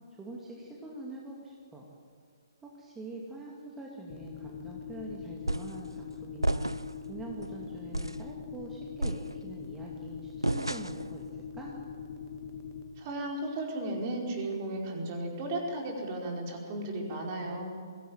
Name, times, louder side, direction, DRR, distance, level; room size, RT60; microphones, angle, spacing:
voice 1, 0.1-1.9 2.6-6.7 7.1-11.8, right 2 dB, 10° right, -2 dB, 2.4 m, -44 dB
sound 1, 4.1-12.8, left 6 dB, 30° left, 2.0 m, -42 dB
sound 2, 5.5-5.8 6.4-7.0 7.4-7.6 7.9-8.3 9.0-9.7 10.4-11.1, right 1 dB, 85° right, 0.5 m, -32 dB
voice 2, 13.0-17.7, right 1 dB, 35° right, 0 dB, 4.8 m, -35 dB
22.0 x 17.0 x 9.2 m, 2.2 s
figure-of-eight pair, 130°, 2 cm